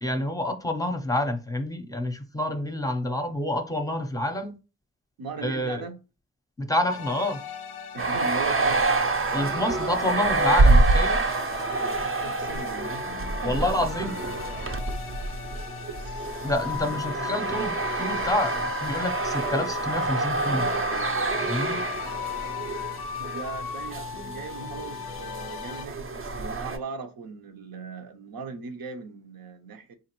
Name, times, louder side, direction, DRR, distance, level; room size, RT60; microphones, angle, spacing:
voice 1, 0.0-4.5 5.4-5.8 6.6-7.4 9.3-11.3 13.4-14.1 16.4-20.7 21.4-21.8, left 1 dB, 10° left, 0.6 m, -28 dB
voice 2, 5.2-6.0 7.9-8.9 12.2-13.9 15.9-16.5 23.2-29.9, right 5 dB, 75° right, 0.7 m, -39 dB
sound 1, 6.9-25.9, left 9 dB, 85° left, 0.5 m, -37 dB
sound 2, 8.0-26.8, right 3 dB, 35° right, 0.5 m, -27 dB
3.8 x 2.5 x 3.0 m
cardioid pair, 55°, 36 cm